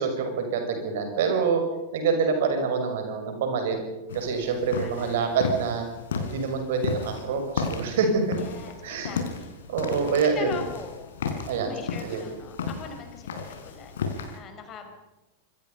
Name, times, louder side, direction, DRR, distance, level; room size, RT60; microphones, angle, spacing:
voice 1, 0.0-1.6 1.9-3.8 4.1-5.9 6.2-8.4 8.8-9.1 9.7-10.5 11.5-11.7 12.0-12.2, right 5 dB, 55° right, 5 dB, 6.2 m, -26 dB
sound 1, 4.1-14.4, left 5 dB, 60° left, 4.1 m, -34 dB
voice 2, 4.7-5.4 8.3-9.5 10.3-11.2 11.5-13.3 13.6-14.9, left 6 dB, 30° left, 5 dB, 5.3 m, -42 dB
27.0 x 23.0 x 5.5 m, 1.1 s
figure-of-eight pair, 90°, 0 cm